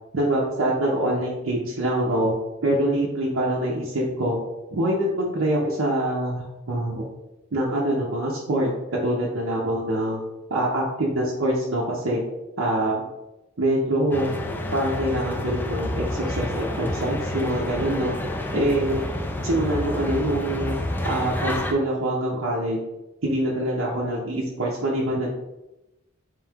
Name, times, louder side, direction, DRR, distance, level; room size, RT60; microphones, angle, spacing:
voice 1, 0.1-2.3 2.6-4.4 4.7-7.1 7.5-8.7 9.0-10.2 10.5-12.2 12.6-13.1 13.6-14.3 14.7-18.2 18.5-19.0 19.4-20.7 21.0-22.8 23.2-25.3, right 1 dB, 70° right, -5 dB, 0.8 m, -24 dB
sound 1, 14.1-21.7, left 1 dB, 10° left, 0.3 m, -29 dB
3.7 x 3.1 x 3.5 m, 0.97 s
head